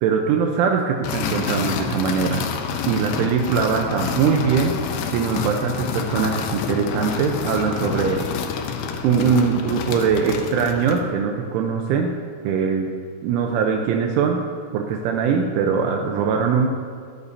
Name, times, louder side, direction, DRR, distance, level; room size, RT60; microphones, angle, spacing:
voice 1, 0.0-2.5 2.9-4.7 5.1-8.2 9.0-12.1 12.4-12.9 13.2-14.4 14.7-16.7, right 6 dB, 80° right, 2 dB, 3.3 m, -21 dB
sound 1, 1.0-11.1, left 6 dB, 85° left, 2.2 m, -28 dB
21.0 x 13.5 x 2.8 m, 2.1 s
omnidirectional pair, 5.7 m